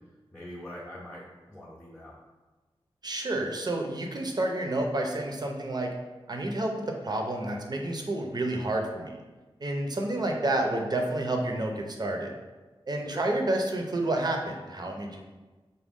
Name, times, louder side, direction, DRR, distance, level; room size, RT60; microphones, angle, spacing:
voice 1, 0.3-2.1 13.0-13.3, left 1 dB, 5° left, -7 dB, 0.7 m, -43 dB
voice 2, 3.0-5.9 6.3-9.1 9.6-12.3 12.9-15.2, right 1 dB, 45° right, 2 dB, 0.6 m, -29 dB
5.0 x 2.2 x 3.6 m, 1.2 s
wide cardioid pair, 65°, 10 cm